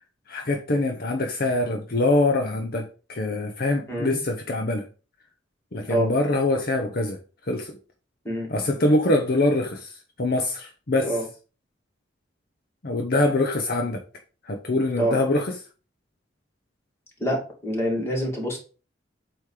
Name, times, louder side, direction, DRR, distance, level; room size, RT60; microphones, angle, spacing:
voice 1, 0.3-4.9 5.7-7.8 8.5-11.2 12.8-14.0 14.4-15.6, left 2 dB, 50° left, 0.8 m, -24 dB
voice 2, 17.2-18.6, equal, 15° left, 2.4 m, -26 dB
8.4 x 3.1 x 4.9 m
head